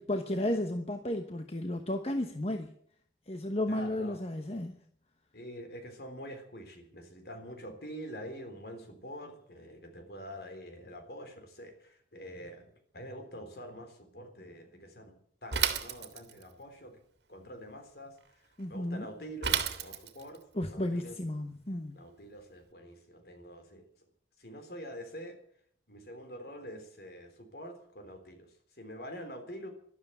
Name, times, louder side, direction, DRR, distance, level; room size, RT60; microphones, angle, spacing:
voice 1, 0.0-2.7 3.3-4.8 18.6-19.1 20.5-21.9, left 1 dB, 35° left, 6 dB, 1.1 m, -33 dB
voice 2, 3.7-4.2 5.3-17.0 17.3-20.4 20.7-21.2 21.9-23.9 24.4-25.4 25.9-29.7, equal, 60° left, 6 dB, 3.7 m, -46 dB
Bicycle / Mechanisms, 15.5-16.5 19.4-20.4, right 8 dB, 75° right, 1.9 m, -31 dB
12.5 x 12.5 x 9.2 m, 0.63 s
head